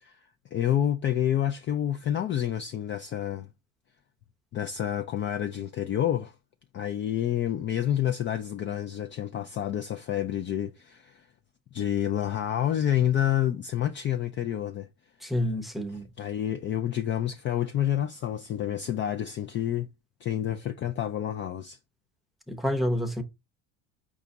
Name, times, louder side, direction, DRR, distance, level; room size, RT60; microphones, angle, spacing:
voice 1, 0.0-3.5 4.5-6.3 6.7-11.3 11.7-14.9 16.2-19.9 20.2-21.8, left 11 dB, 35° left, 0.4 m, -28 dB
voice 2, 15.2-16.1 22.5-23.2, left 1 dB, ahead, 0.7 m, -28 dB
4.9 x 2.4 x 4.0 m
supercardioid pair, 105°, 35 cm